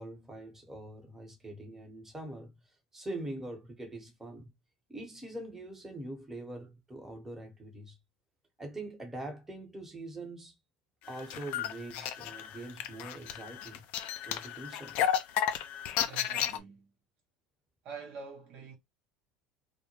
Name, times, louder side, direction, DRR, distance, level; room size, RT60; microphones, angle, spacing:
voice 1, 0.0-2.6 2.9-4.5 4.9-8.0 8.6-10.5 11.1-13.8 14.3-15.0, right 1 dB, 15° right, 1.1 m, -43 dB
sound 1, 11.1-16.6, left 10 dB, 65° left, 0.4 m, -33 dB
voice 2, 15.9-16.9 17.8-18.7, right 5 dB, 60° right, 0.8 m, -46 dB
2.2 x 2.1 x 2.9 m
hypercardioid pair, 80°, 3 cm